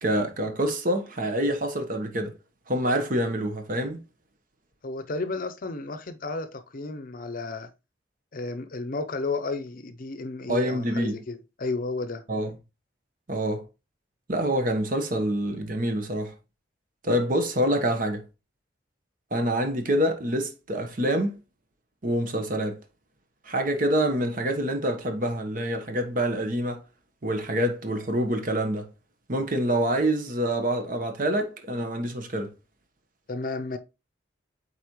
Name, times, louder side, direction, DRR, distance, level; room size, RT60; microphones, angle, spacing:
voice 1, 0.0-2.3 2.7-4.0 10.5-11.2 12.3-12.5 13.3-13.6 14.3-16.3 17.0-18.2 19.3-21.3 22.0-22.8 23.4-26.8 27.2-28.9 29.3-32.5, right 1 dB, 50° right, 1.2 m, -26 dB
voice 2, 4.8-7.7 8.3-12.2 33.3-33.8, left 3 dB, 50° left, 0.6 m, -32 dB
8.1 x 4.2 x 3.1 m
head